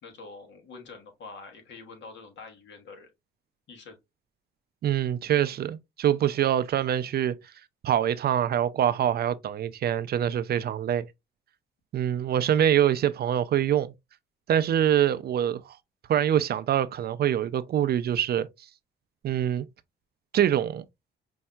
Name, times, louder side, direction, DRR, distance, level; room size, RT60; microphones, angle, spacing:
voice 1, 0.0-3.1 3.7-4.0, left 4 dB, 65° left, 1.3 m, -46 dB
voice 2, 4.8-7.3 7.8-11.1 11.9-13.9 14.5-15.8 16.1-18.5 19.2-19.7 20.3-20.8, right 10 dB, 55° right, 0.4 m, -24 dB
5.4 x 2.6 x 2.2 m
cardioid pair, 90°, 20 cm